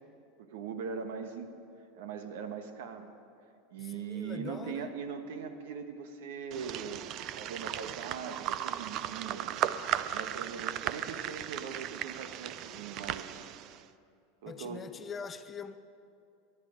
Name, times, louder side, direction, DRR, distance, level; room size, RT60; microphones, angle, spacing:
voice 1, 0.4-1.5 1.9-3.1 3.7-7.0 7.4-9.6 9.9-13.5 14.4-14.9, right 6 dB, 75° right, 8 dB, 1.3 m, -41 dB
voice 2, 3.8-4.9 14.5-15.8, left 6 dB, 25° left, 11 dB, 0.6 m, -43 dB
sound 1, 6.5-13.8, right 12 dB, 50° right, 0.5 m, -36 dB
19.0 x 11.5 x 5.2 m, 2.5 s
hypercardioid pair, 105°, 0 cm